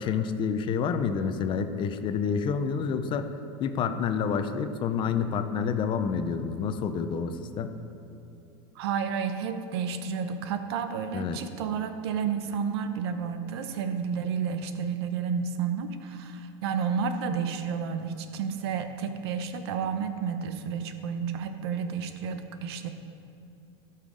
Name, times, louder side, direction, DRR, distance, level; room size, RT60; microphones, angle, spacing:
voice 1, 0.0-3.3 3.6-7.7 11.1-11.4, left 6 dB, 40° left, 9 dB, 0.6 m, -28 dB
voice 2, 8.8-22.9, right 6 dB, 75° right, 8 dB, 0.8 m, -31 dB
12.0 x 5.7 x 5.0 m, 2.6 s
supercardioid pair, 120°, 13 cm